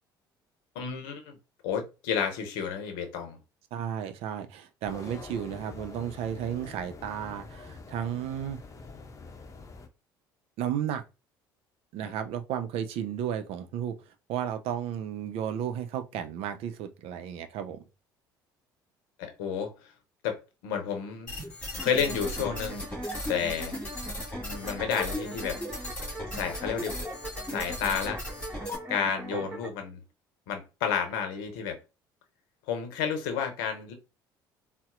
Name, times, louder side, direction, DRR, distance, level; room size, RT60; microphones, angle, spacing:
voice 1, 0.7-1.4 1.6-3.4 12.0-12.1 19.2-19.7 20.2-21.3 21.8-22.8 23.3-23.8 24.4-25.6 26.3-27.0 27.5-28.2 28.9-30.0 30.5-31.8 32.7-33.9, left 7 dB, 75° left, 0.7 m, -31 dB
voice 2, 3.7-8.6 10.6-11.0 11.9-14.0 14.3-17.8 29.3-29.5, right 9 dB, 60° right, 0.5 m, -33 dB
sound 1, 4.8-9.9, left 4 dB, 30° left, 0.7 m, -45 dB
sound 2, 21.3-28.8, left 1 dB, 10° left, 1.8 m, -37 dB
sound 3, 21.8-29.7, right 1 dB, 20° right, 1.2 m, -42 dB
4.0 x 2.0 x 2.4 m
hypercardioid pair, 60°, 11 cm